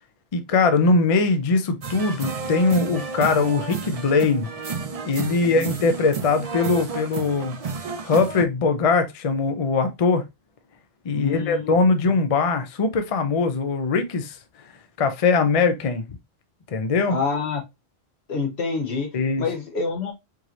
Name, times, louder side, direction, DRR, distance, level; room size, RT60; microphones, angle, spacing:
voice 1, 0.3-4.5 5.0-7.6 7.8-10.2 11.0-14.4 15.0-16.0 16.7-17.2 19.1-19.5, left 4 dB, 40° left, 0.5 m, -21 dB
sound 1, 1.8-8.4, right 5 dB, 45° right, 0.5 m, -32 dB
voice 2, 11.1-11.7 17.1-17.6 18.3-19.1 19.4-20.1, left 4 dB, 85° left, 1.4 m, -27 dB
4.7 x 3.0 x 2.6 m
omnidirectional pair, 1.1 m